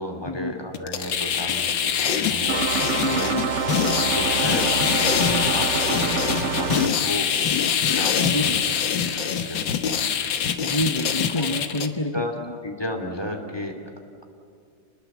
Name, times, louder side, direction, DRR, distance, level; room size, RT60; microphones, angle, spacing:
voice 1, 0.0-2.7 3.0-3.4 4.0-4.7 5.2-7.3 7.8-8.5 9.0-9.7 11.4-11.8 12.1-12.3 12.6-13.8, left 1 dB, 10° left, 3 dB, 2.7 m, -33 dB
sound 1, 0.7-11.9, left 8 dB, 70° left, 1.8 m, -24 dB
sound 2, 2.5-6.9, right 6 dB, 50° right, 0.9 m, -26 dB
voice 2, 2.8-3.5 8.2-8.6 10.6-12.5, left 1 dB, 30° left, 5 dB, 0.5 m, -28 dB
28.0 x 20.5 x 7.3 m, 2.3 s
omnidirectional pair, 2.2 m